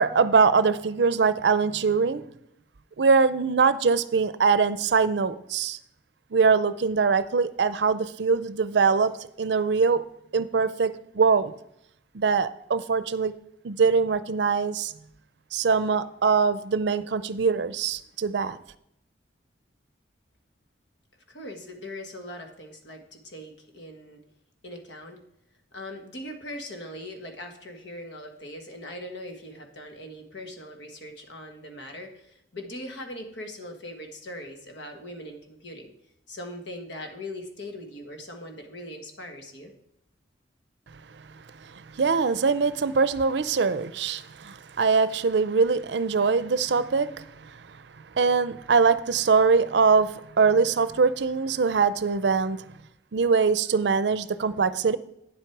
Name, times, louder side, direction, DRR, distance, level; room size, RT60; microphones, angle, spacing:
voice 1, 0.0-2.2 3.0-5.8 6.3-10.0 10.3-11.5 12.1-13.4 13.6-14.9 15.5-18.6 41.6-47.6 48.2-52.6 53.1-55.0, right 5 dB, 70° right, 0.5 m, -23 dB
voice 2, 21.3-24.2 24.6-25.2 25.7-35.9 36.3-39.7, left 1 dB, 80° left, 1.5 m, -40 dB
9.3 x 7.8 x 4.7 m
head